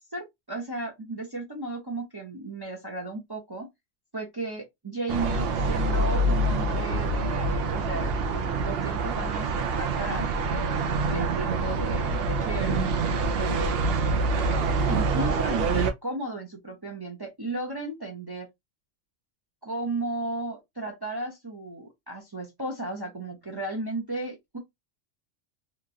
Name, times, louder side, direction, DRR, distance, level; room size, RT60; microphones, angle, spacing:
voice 1, 0.0-3.7 4.1-9.5 9.8-12.8 13.4-13.8 14.9-18.5 19.6-24.6, right 2 dB, 25° right, 0.6 m, -34 dB
sound 1, 5.1-15.9, right 3 dB, 60° right, 0.7 m, -26 dB
3.0 x 2.4 x 2.5 m
omnidirectional pair, 1.2 m